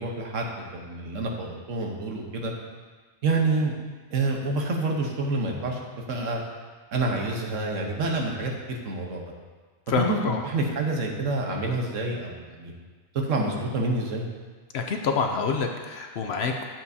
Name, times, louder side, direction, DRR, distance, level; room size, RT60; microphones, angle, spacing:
voice 1, 0.0-2.5 3.2-3.7 4.1-5.8 6.1-6.4 6.9-9.2 10.0-12.7 13.1-14.3, right 2 dB, 75° right, 0 dB, 1.3 m, -28 dB
voice 2, 9.9-10.4 14.7-16.7, left 5 dB, 60° left, 3 dB, 0.8 m, -27 dB
9.3 x 7.4 x 2.7 m, 1.4 s
omnidirectional pair, 1.4 m